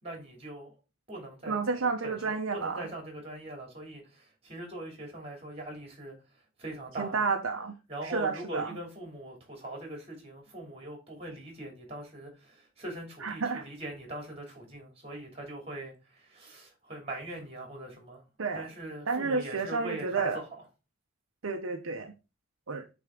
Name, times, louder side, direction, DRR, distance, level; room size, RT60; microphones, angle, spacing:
voice 1, 0.0-0.7 1.1-6.1 6.6-7.2 7.9-18.2 18.5-20.4, right 1 dB, 30° right, 2.6 m, -41 dB
voice 2, 1.5-2.9 7.0-7.7 8.0-8.7 13.2-13.7 18.4-18.7 19.1-20.4 21.4-22.1 22.7-22.8, right 4 dB, 65° right, 0.7 m, -31 dB
7.9 x 3.5 x 3.7 m
head